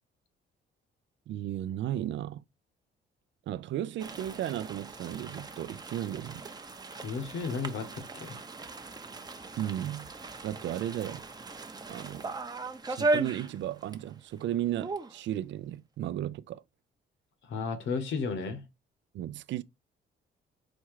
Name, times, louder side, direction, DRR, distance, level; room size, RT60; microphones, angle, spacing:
voice 1, 1.3-2.4 3.5-6.4 9.6-10.1 10.4-11.2 11.9-12.3 12.9-16.6 19.1-19.6, right 12 dB, 70° right, 0.4 m, -35 dB
sound 1, 4.0-14.1 14.4-14.5 14.8-15.2, right 3 dB, 20° right, 0.7 m, -37 dB
voice 2, 7.0-8.4 17.4-18.6, left 4 dB, 70° left, 1.2 m, -33 dB
4.4 x 2.4 x 4.6 m
cardioid pair, 90°, 20 cm